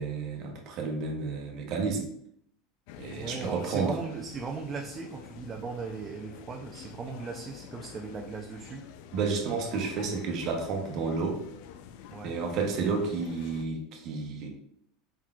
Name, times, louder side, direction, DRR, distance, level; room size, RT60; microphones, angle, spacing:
voice 1, 0.0-2.1 3.0-4.0 9.1-11.4 12.2-14.5, right 4 dB, 45° right, 2 dB, 0.9 m, -31 dB
sound 1, 2.9-13.6, left 9 dB, 65° left, 0.3 m, -47 dB
voice 2, 3.1-8.9 12.1-12.4, right 5 dB, 20° right, 2 dB, 0.4 m, -38 dB
4.4 x 3.8 x 2.4 m, 0.69 s
supercardioid pair, 145°, 0 cm